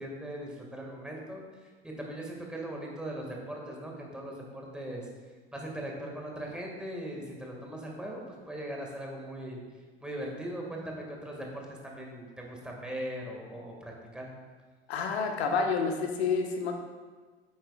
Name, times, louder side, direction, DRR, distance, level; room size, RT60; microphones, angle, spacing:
voice 1, 0.0-1.4 1.8-5.1 5.5-9.6 10.0-14.3, right 1 dB, 5° right, -1 dB, 1.8 m, -39 dB
voice 2, 14.9-16.7, left 5 dB, 70° left, 3 dB, 1.2 m, -29 dB
10.0 x 8.6 x 2.4 m, 1.4 s
figure-of-eight pair, 70°, 33 cm